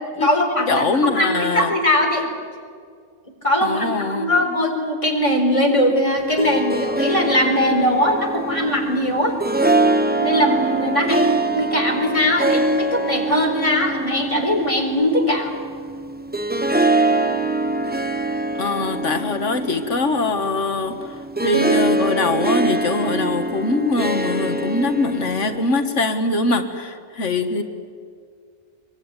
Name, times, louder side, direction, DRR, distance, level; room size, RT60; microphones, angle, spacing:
voice 1, 0.2-2.3 3.4-9.3 10.2-15.5, left 1 dB, 25° left, 2 dB, 4.3 m, -20 dB
voice 2, 0.7-1.7 3.6-4.3 18.6-27.6, left 3 dB, 85° left, 7 dB, 1.9 m, -22 dB
Harp, 6.2-26.0, right 2 dB, 10° right, 0.9 m, -23 dB
25.0 x 23.5 x 9.8 m, 2.1 s
omnidirectional pair, 1.2 m